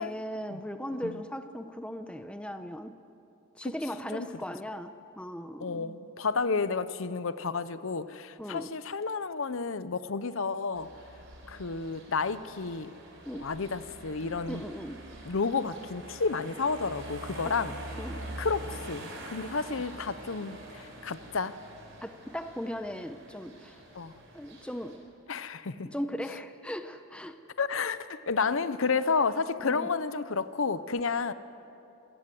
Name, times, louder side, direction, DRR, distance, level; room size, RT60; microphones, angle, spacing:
voice 1, 0.0-3.0 3.6-6.0 8.4-8.7 13.3-13.5 14.5-15.0 17.5-17.6 18.0-18.2 22.0-23.8 24.3-25.1 25.8-27.4 29.6-29.9, equal, 5° left, 8 dB, 0.7 m, -38 dB
voice 2, 5.6-10.9 11.5-12.9 13.4-14.6 15.2-17.7 18.4-21.6 23.9-24.1 25.3-25.9 27.6-31.3, left 4 dB, 65° left, 14 dB, 0.7 m, -31 dB
sound 1, 10.7-25.0, right 1 dB, 55° right, 4.6 m, -45 dB
27.0 x 17.5 x 7.7 m, 2.7 s
head